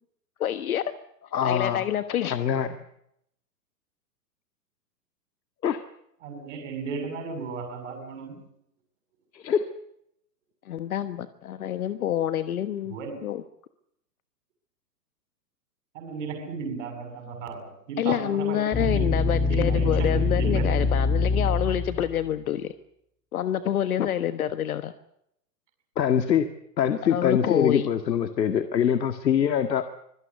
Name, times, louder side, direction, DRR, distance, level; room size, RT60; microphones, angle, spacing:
voice 1, 0.4-0.9 1.4-2.4 10.7-12.9 13.2-13.4 18.0-22.7 23.3-24.9 27.0-27.9, left 10 dB, 60° left, 1.4 m, -27 dB
voice 2, 1.3-1.8 2.3-2.8 5.6-5.8 9.3-9.7 18.1-18.2 26.0-26.5 26.8-29.8, left 8 dB, 85° left, 2.0 m, -24 dB
voice 3, 6.2-8.4 12.9-13.3 15.9-19.1 19.5-20.8, right 4 dB, 45° right, 6.8 m, -35 dB
sound 1, 18.7-22.2, left 3 dB, 10° left, 7.2 m, -24 dB
25.5 x 17.5 x 8.2 m
hypercardioid pair, 165°, 50 cm